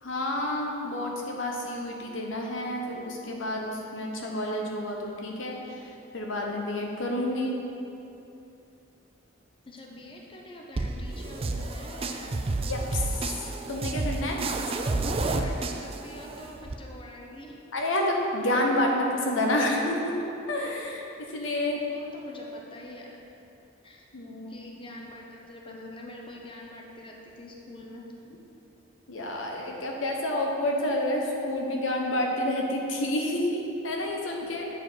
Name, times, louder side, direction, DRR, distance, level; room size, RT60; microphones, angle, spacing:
voice 1, 0.0-7.6 12.7-14.4 17.7-21.8 24.1-24.6 29.1-34.7, left 1 dB, 90° left, 0 dB, 1.0 m, -29 dB
voice 2, 9.7-12.7 15.0-17.6 21.9-23.2 23.8-24.1 24.5-28.4 34.6-34.7, left 1 dB, 25° left, -1 dB, 0.7 m, -45 dB
sound 1, 10.8-16.7, right 2 dB, 30° right, 0.4 m, -30 dB
8.1 x 5.0 x 4.6 m, 2.8 s
head